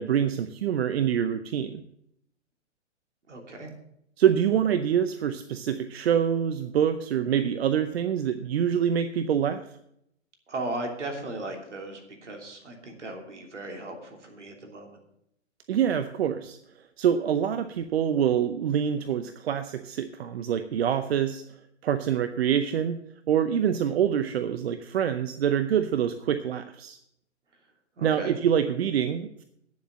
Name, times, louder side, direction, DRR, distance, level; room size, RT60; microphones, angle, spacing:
voice 1, 0.0-1.8 4.2-9.6 15.7-16.6 17.0-21.4 21.8-23.0 23.3-27.0 28.0-29.4, right 9 dB, 60° right, 10 dB, 0.7 m, -25 dB
voice 2, 3.3-3.7 10.5-15.0 28.0-28.3, right 2 dB, 80° right, 3 dB, 3.0 m, -37 dB
9.8 x 7.4 x 7.3 m, 0.76 s
figure-of-eight pair, 120°, 36 cm